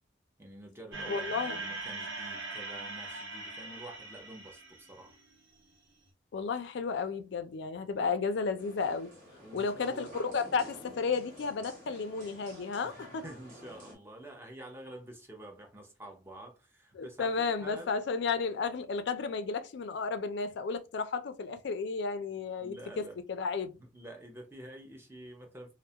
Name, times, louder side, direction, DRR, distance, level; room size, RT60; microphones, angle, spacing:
voice 1, 0.4-5.2 8.0-8.1 9.4-10.1 12.8-17.9 22.6-23.2 23.8-25.7, right 1 dB, 15° right, 0.5 m, -48 dB
sound 1, 0.9-5.3, right 3 dB, 80° right, 0.8 m, -41 dB
voice 2, 1.1-1.6 6.3-9.1 9.5-13.2 17.0-23.8, left 5 dB, 60° left, 0.4 m, -33 dB
sound 2, 8.6-14.0, equal, 45° right, 1.2 m, -51 dB
2.2 x 2.1 x 2.7 m
head